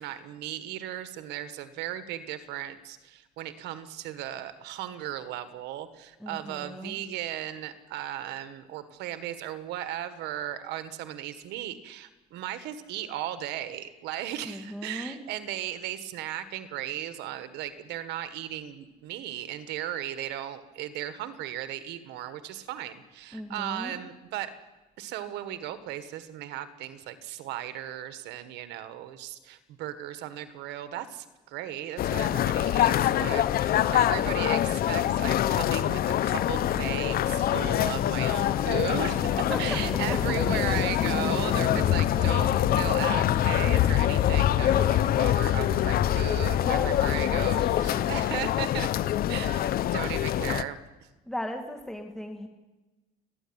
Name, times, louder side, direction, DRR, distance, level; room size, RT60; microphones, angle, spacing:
voice 1, 0.0-24.5 25.0-48.9 49.3-50.8, right 12 dB, 90° right, 11 dB, 1.6 m, -36 dB
voice 2, 6.2-7.0 14.5-15.2 23.3-24.0 38.3-38.4 39.3-39.6 46.6-47.2 49.3-49.6 51.3-52.5, left 1 dB, 5° left, 4 dB, 2.3 m, -37 dB
sound 1, 32.0-50.6, left 12 dB, 60° left, 0.8 m, -25 dB
sound 2, 36.6-48.3, left 4 dB, 30° left, 2.0 m, -37 dB
30.0 x 10.5 x 8.9 m, 1.1 s
cardioid pair, 110°, 17 cm